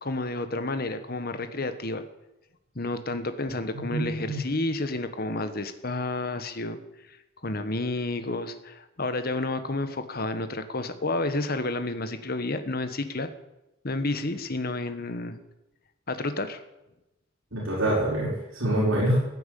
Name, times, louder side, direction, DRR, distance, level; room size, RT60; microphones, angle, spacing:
voice 1, 0.0-2.0 2.7-6.8 7.4-13.3 13.8-15.4 16.1-16.6, left 2 dB, 50° left, 10 dB, 1.3 m, -30 dB
voice 2, 3.9-4.4 17.5-19.2, right 1 dB, 80° right, -5 dB, 6.0 m, -25 dB
15.5 x 9.4 x 8.4 m, 0.96 s
head